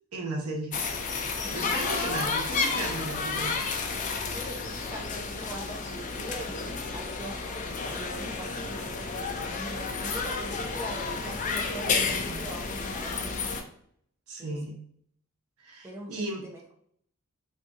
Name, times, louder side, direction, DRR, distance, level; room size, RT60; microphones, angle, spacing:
voice 1, 0.1-0.7 1.5-3.6 11.9-12.4 14.3-14.7 15.6-16.4, right 2 dB, 90° right, 0 dB, 1.0 m, -35 dB
sound 1, 0.7-13.6, left 4 dB, 35° left, 0.4 m, -31 dB
voice 2, 1.4-2.3 4.2-7.6 7.9-13.5 14.4-14.8 15.8-16.6, right 1 dB, 15° right, -1 dB, 0.7 m, -42 dB
2.8 x 2.6 x 3.6 m, 0.64 s
head